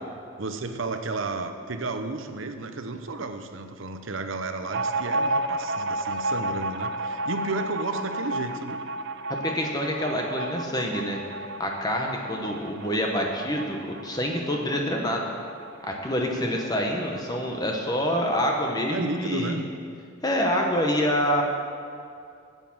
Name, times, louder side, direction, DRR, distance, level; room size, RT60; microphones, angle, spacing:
voice 1, 0.4-8.8 16.3-16.6 18.9-19.6, right 3 dB, 75° right, 7 dB, 0.8 m, -32 dB
sound 1, 4.7-17.8 18.1-18.2 18.5-19.3, right 2 dB, 55° right, 0.4 m, -32 dB
voice 2, 9.4-11.2 11.6-15.3 15.8-19.6 20.2-21.4, equal, 20° left, 1 dB, 1.0 m, -26 dB
9.1 x 8.3 x 7.2 m, 2.4 s
head